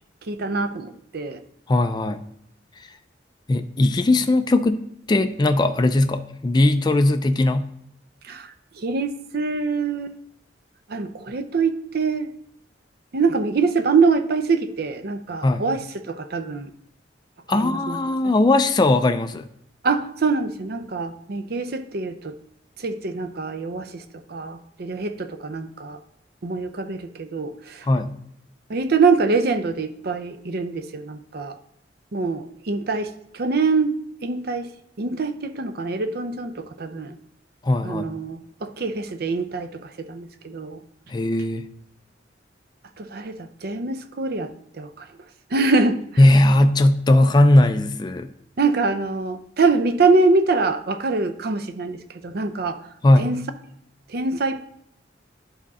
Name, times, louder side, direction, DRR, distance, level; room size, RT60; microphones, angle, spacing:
voice 1, 0.2-1.4 8.2-10.2 10.9-12.3 13.1-16.7 17.5-18.0 19.8-22.4 22.8-26.0 26.4-27.9 28.7-31.6 32.1-34.7 35.0-37.2 37.8-40.8 43.0-45.1 45.5-46.0 48.6-52.8 53.2-53.4 54.1-54.6, right 4 dB, 60° right, 9 dB, 0.6 m, -24 dB
voice 2, 1.7-2.2 3.5-7.7 15.4-15.6 17.5-19.5 27.9-28.2 37.6-38.1 41.1-41.7 46.2-48.3 53.0-53.3, left 1 dB, 25° left, 8 dB, 0.4 m, -18 dB
11.0 x 3.7 x 4.1 m, 0.75 s
head